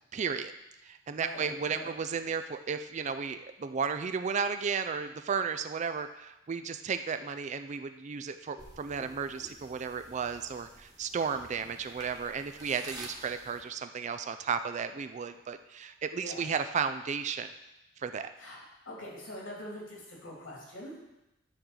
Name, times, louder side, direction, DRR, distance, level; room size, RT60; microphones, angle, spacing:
voice 1, 0.1-0.5 0.8-17.5 18.0-18.3, right 6 dB, 35° right, 9 dB, 0.4 m, -34 dB
voice 2, 1.2-1.9 16.2-16.5 18.4-18.6 18.8-21.2, left 1 dB, 85° left, -4 dB, 3.0 m, -43 dB
sound 1, 8.6-13.6, right 2 dB, 20° right, 1.4 m, -50 dB
9.9 x 3.8 x 7.3 m, 0.94 s
head